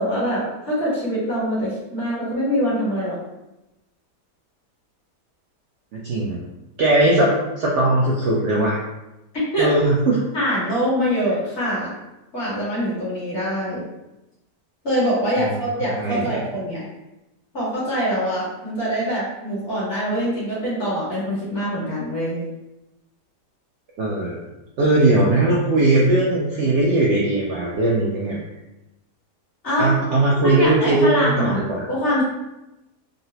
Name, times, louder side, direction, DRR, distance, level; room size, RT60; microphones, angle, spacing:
voice 1, 0.0-3.2 9.5-9.7 10.3-11.9 12.3-13.8 14.8-16.9 17.5-22.4 29.6-29.9 30.4-31.6 31.9-32.2, equal, 45° left, -8 dB, 1.5 m, -24 dB
voice 2, 5.9-6.4 6.8-8.8 9.6-10.2 15.4-15.6 16.0-16.4 24.0-24.4 24.8-28.4 29.8-31.8, right 2 dB, 90° right, -4 dB, 0.6 m, -19 dB
3.8 x 2.0 x 2.7 m, 0.97 s
omnidirectional pair, 1.8 m